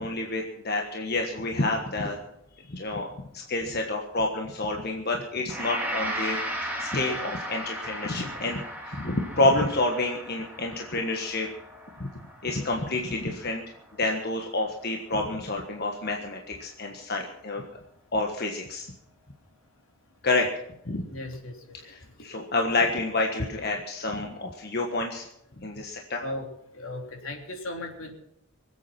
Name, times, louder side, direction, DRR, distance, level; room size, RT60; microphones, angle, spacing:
voice 1, 0.0-2.2 2.7-3.1 3.3-11.5 12.0-12.1 12.4-13.6 14.0-17.7 18.1-18.9 20.2-20.5 20.8-21.0 21.8-25.3 25.6-26.2, left 2 dB, 50° left, 2 dB, 1.5 m, -28 dB
Gong, 5.5-14.7, right 1 dB, 10° right, 2.7 m, -36 dB
voice 2, 21.1-21.5 26.2-26.5 26.7-28.1, left 1 dB, 75° left, 2 dB, 3.4 m, -36 dB
24.0 x 8.4 x 6.0 m, 0.80 s
head